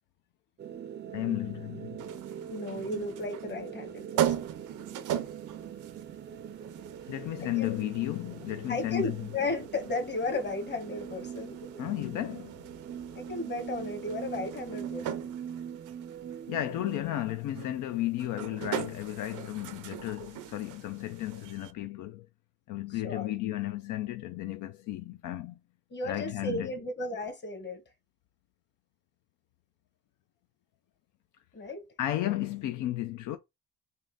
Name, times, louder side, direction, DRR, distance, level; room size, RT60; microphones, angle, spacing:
sound 1, 0.6-17.0, right 9 dB, 35° right, 0.4 m, -43 dB
voice 1, 1.1-2.0 7.1-9.1 11.8-12.6 16.5-22.3 22.7-25.6 26.0-26.7 32.0-33.4, left 14 dB, 80° left, 0.5 m, -33 dB
sound 2, 2.0-21.7, right 10 dB, 85° right, 0.6 m, -39 dB
voice 2, 2.5-4.4 7.4-7.8 8.7-11.6 13.1-15.3 22.9-23.3 25.9-27.8 31.5-31.9, left 2 dB, 35° left, 1.2 m, -35 dB
3.6 x 2.6 x 3.9 m
cardioid pair, 90°, 30 cm